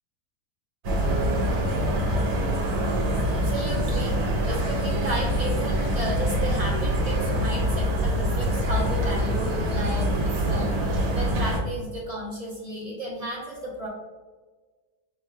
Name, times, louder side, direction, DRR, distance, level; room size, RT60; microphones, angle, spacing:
sound 1, 0.8-11.6, equal, 75° right, 1.3 m, -25 dB
Female speech woman speaking, 2.5-4.3 4.7-8.5, left 2 dB, 70° left, 1.5 m, -46 dB
voice 1, 3.1-13.9, right 1 dB, 25° right, -5 dB, 0.9 m, -33 dB
6.2 x 3.0 x 2.3 m, 1.4 s
omnidirectional pair, 1.7 m